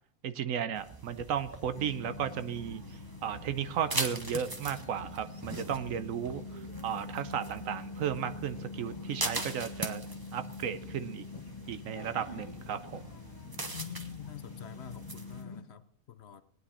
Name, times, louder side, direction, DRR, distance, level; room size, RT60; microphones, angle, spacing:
voice 1, 0.2-2.8 3.2-6.4 6.8-10.1 10.3-11.3 11.7-13.1, right 8 dB, 75° right, 12 dB, 1.1 m, -34 dB
sound 1, 0.7-15.4, right 2 dB, 20° right, 0.8 m, -42 dB
sound 2, 1.7-15.6, left 3 dB, 35° left, 1.2 m, -45 dB
voice 2, 13.7-16.4, left 10 dB, 55° left, 10 dB, 0.9 m, -45 dB
18.5 x 9.8 x 4.2 m, 0.68 s
omnidirectional pair, 1.4 m